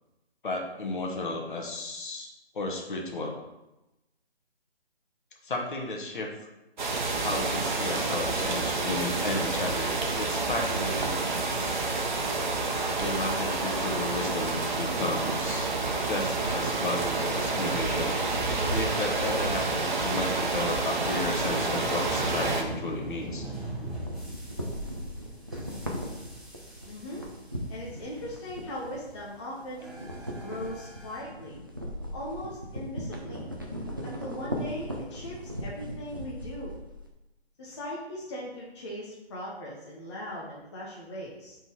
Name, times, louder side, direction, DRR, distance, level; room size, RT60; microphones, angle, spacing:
voice 1, 0.4-2.3 2.5-3.4 5.4-6.3 7.2-11.2 13.0-15.7 16.0-18.1 18.7-23.5, left 2 dB, 50° left, 1 dB, 1.2 m, -33 dB
sound 1, 6.8-22.6, right 3 dB, 45° right, 1.0 m, -29 dB
sound 2, 19.8-31.2, right 1 dB, ahead, 1.0 m, -44 dB
sound 3, 23.9-29.4 29.7-37.1, equal, 20° right, 0.4 m, -38 dB
voice 2, 26.8-27.2 27.7-29.9 30.4-31.6 32.1-33.4 34.0-36.7 37.6-41.6, equal, 25° left, -4 dB, 0.8 m, -39 dB
5.3 x 3.8 x 4.6 m, 0.97 s
figure-of-eight pair, 155°, 32 cm